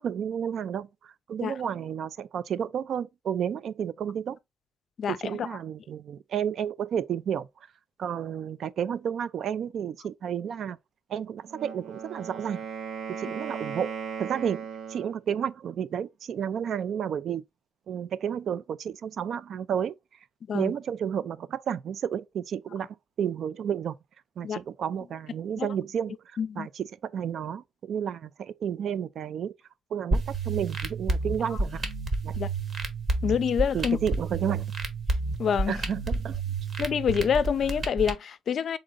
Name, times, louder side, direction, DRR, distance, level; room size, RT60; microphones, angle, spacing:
voice 1, 0.0-4.4 5.1-7.5 8.0-10.8 11.1-12.6 13.2-13.9 14.2-14.6 14.9-17.4 17.9-19.9 20.5-24.0 24.4-26.2 26.6-29.5 29.9-31.8 32.2-32.4 33.7-34.7 35.7-36.4, right 8 dB, 60° right, 0.3 m, -31 dB
voice 2, 5.0-5.5 20.5-20.7 24.4-24.6 25.6-25.7 26.4-26.7 31.5-31.6 32.4-32.5 33.2-34.0 35.4-35.8 36.8-38.8, left 7 dB, 55° left, 0.4 m, -27 dB
Wind instrument woodwind instrument, 11.4-15.2, right 7 dB, 80° right, 1.0 m, -37 dB
sound 1, 30.1-38.1, right 3 dB, 40° right, 1.1 m, -30 dB
3.8 x 3.8 x 3.7 m
cardioid pair, 125°, 0 cm